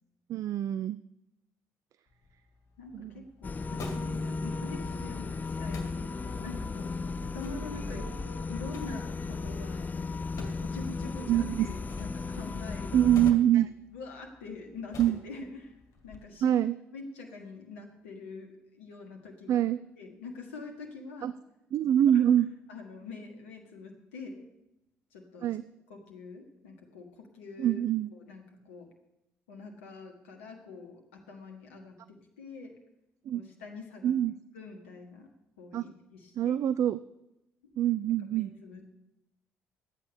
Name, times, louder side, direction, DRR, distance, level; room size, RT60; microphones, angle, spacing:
voice 1, 0.3-1.0 2.9-3.2 11.3-11.7 12.9-13.7 15.0-15.2 16.4-16.8 19.5-19.8 21.2-21.3 21.7-22.5 25.4-25.6 27.6-28.1 33.3-33.4 34.0-34.3 35.7-35.8 36.4-37.0 37.8-38.5, right 11 dB, 50° right, 16 dB, 0.4 m, -25 dB
sound 1, 2.1-16.2, left 3 dB, 55° left, 2.1 m, -50 dB
voice 2, 2.8-9.9 10.4-13.1 13.9-16.5 16.9-18.5 18.7-19.6 20.0-21.3 22.1-22.2 22.7-24.5 25.1-25.5 25.9-27.8 28.1-28.9 29.5-32.7 33.3-34.1 34.5-35.3 35.6-36.5 37.6-37.7 38.3-39.0, left 4 dB, 80° left, 3 dB, 1.5 m, -45 dB
sound 2, 3.4-13.3, left 4 dB, 25° left, 0.5 m, -35 dB
sound 3, 4.5-9.8, right 1 dB, 75° right, 2.3 m, -51 dB
12.0 x 8.7 x 6.9 m, 0.90 s
figure-of-eight pair, 45°, 7 cm